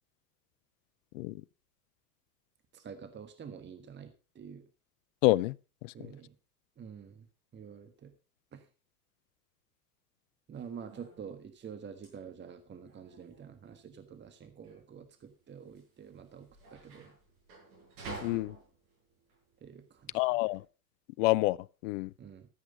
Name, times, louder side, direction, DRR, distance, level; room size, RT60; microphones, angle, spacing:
voice 1, 2.7-4.6 5.9-6.3 6.8-7.3 7.5-8.1 8.5-8.6 10.5-17.1 19.6-20.1 22.2-22.5, right 7 dB, 20° right, 1.5 m, -47 dB
voice 2, 5.2-5.6 5.8-6.1 18.2-18.6 20.1-20.6 21.2-21.6 21.8-22.1, left 20 dB, 55° left, 0.6 m, -28 dB
sound 1, 10.5-20.6, right 3 dB, 65° right, 7.3 m, -51 dB
14.0 x 8.1 x 5.4 m
hypercardioid pair, 90°, 49 cm